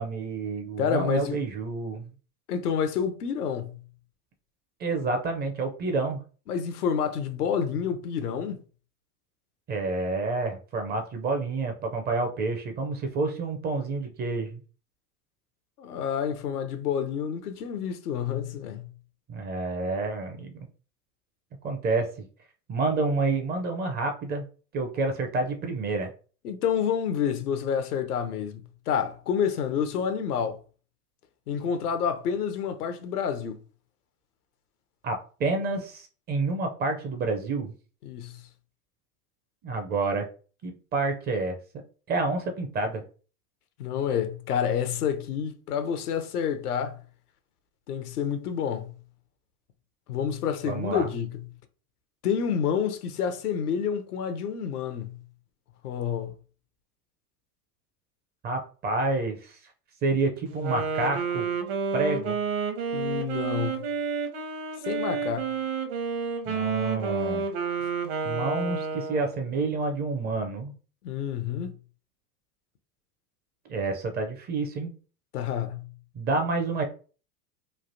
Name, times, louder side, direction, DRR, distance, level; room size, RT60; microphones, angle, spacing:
voice 1, 0.0-2.1 4.8-6.2 9.7-14.6 19.3-20.7 21.6-22.3 22.7-24.4 24.7-26.1 35.0-37.7 39.6-40.3 40.6-41.6 42.1-43.0 50.6-51.1 58.4-59.6 60.0-61.5 61.9-62.4 66.5-67.5 68.2-70.7 73.7-74.9 76.1-76.8, right 3 dB, 25° right, 0.5 m, -29 dB
voice 2, 0.8-1.4 2.5-3.8 6.5-8.6 15.8-18.9 26.4-30.6 31.5-33.6 38.0-38.4 43.8-47.0 47.9-48.9 50.1-51.5 52.2-55.2 55.8-56.3 62.9-63.8 64.9-65.5 71.0-71.8 75.3-75.9, left 7 dB, 80° left, 0.7 m, -29 dB
Wind instrument woodwind instrument, 60.5-69.5, right 5 dB, 55° right, 0.9 m, -30 dB
3.3 x 2.4 x 2.6 m
hypercardioid pair, 100°, 45 cm